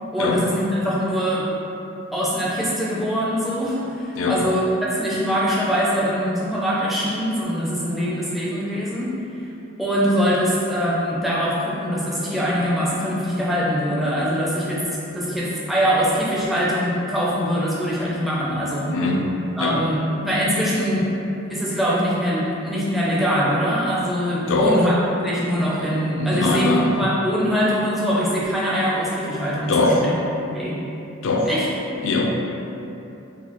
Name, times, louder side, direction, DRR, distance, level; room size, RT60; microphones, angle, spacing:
voice 1, 0.1-1.5 2.1-4.6 4.9-9.4 9.8-14.8 15.1-19.0 19.6-21.1 21.5-24.9 25.2-30.1 30.4-30.8 31.5-31.7, equal, ahead, -8 dB, 0.4 m, -23 dB
voice 2, 18.9-19.3 19.6-19.9 24.5-24.9 26.2-27.0 29.7-30.1 31.2-31.5 32.0-32.3, left 2 dB, 65° left, 1 dB, 0.4 m, -21 dB
4.0 x 2.3 x 2.9 m, 2.9 s
head